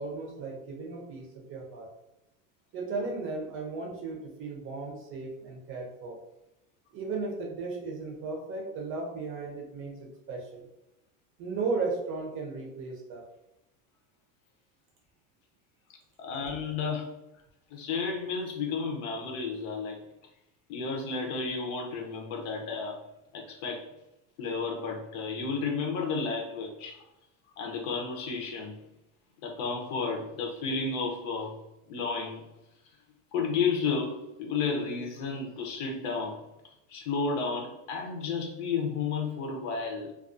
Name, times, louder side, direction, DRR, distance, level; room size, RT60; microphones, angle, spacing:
voice 1, 0.0-1.9 2.7-6.2 6.9-10.7 11.4-13.2, right 3 dB, 30° right, 0 dB, 0.6 m, -35 dB
voice 2, 16.2-17.1 17.7-20.0 20.7-23.0 23.3-23.8 24.4-27.0 27.6-28.8 29.4-31.5 31.9-32.4 33.3-36.4 36.9-40.1, left 4 dB, 70° left, 2 dB, 0.7 m, -32 dB
2.4 x 2.3 x 2.4 m, 0.88 s
cardioid pair, 150°, 39 cm